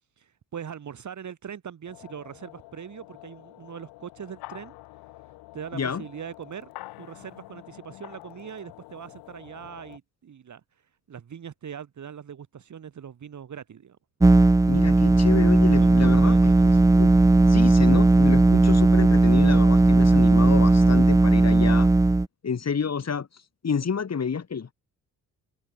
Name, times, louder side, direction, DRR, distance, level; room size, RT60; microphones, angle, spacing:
voice 1, 0.2-4.7 5.5-6.7 7.0-10.6 11.1-14.0 15.7-16.8, right 8 dB, 50° right, 2.8 m, -41 dB
sound 1, 1.8-10.0, left 20 dB, 80° left, 5.3 m, -47 dB
voice 2, 5.7-6.0 14.7-16.5 16.9-17.1 17.5-21.9 22.4-23.3 23.6-24.7, left 6 dB, 45° left, 5.5 m, -29 dB
sound 2, 14.2-22.2, right 2 dB, 10° right, 0.7 m, -17 dB
hypercardioid pair, 55°, 37 cm